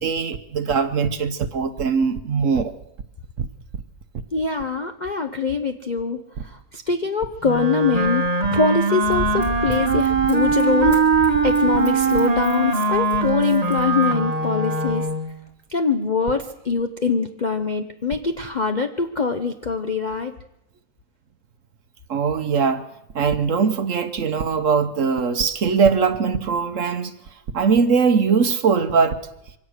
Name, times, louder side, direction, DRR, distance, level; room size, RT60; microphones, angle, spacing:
voice 1, 0.0-2.7 3.4-3.5 22.1-22.8 23.1-27.1 27.5-29.2, right 5 dB, 55° right, 1.0 m, -21 dB
voice 2, 4.3-11.0 11.4-15.1 15.7-20.3, left 5 dB, 90° left, 0.4 m, -23 dB
Wind instrument woodwind instrument, 7.4-15.3, right 4 dB, 25° right, 1.0 m, -21 dB
Run, 9.1-14.3 14.9-15.0, equal, 40° left, 4.0 m, -35 dB
23.5 x 17.0 x 6.5 m
omnidirectional pair, 2.0 m